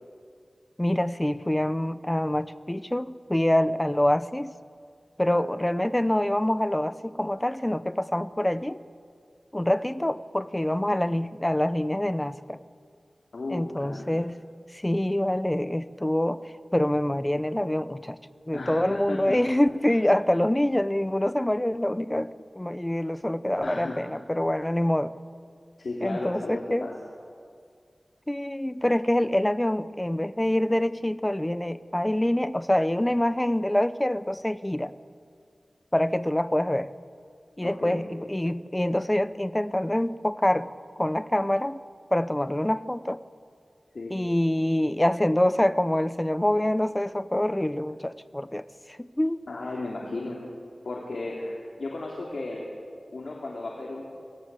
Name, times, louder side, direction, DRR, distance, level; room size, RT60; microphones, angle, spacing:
voice 1, 0.8-4.5 5.2-8.8 9.5-12.6 13.5-14.4 14.7-16.4 16.7-18.2 18.5-25.1 26.0-26.9 28.3-34.9 35.9-36.9 37.6-40.7 41.0-41.8 42.1-43.2 44.1-48.6 48.9-49.4, left 1 dB, 15° left, 14 dB, 0.8 m, -25 dB
voice 2, 13.3-14.1 18.5-19.4 19.8-20.0 23.6-24.0 25.8-26.9 37.6-38.0 43.9-44.1 49.5-50.4 50.8-52.6 53.1-54.0, left 2 dB, 80° left, -2 dB, 3.2 m, -34 dB
27.0 x 18.5 x 8.4 m, 2.2 s
wide cardioid pair, 80°, 0 cm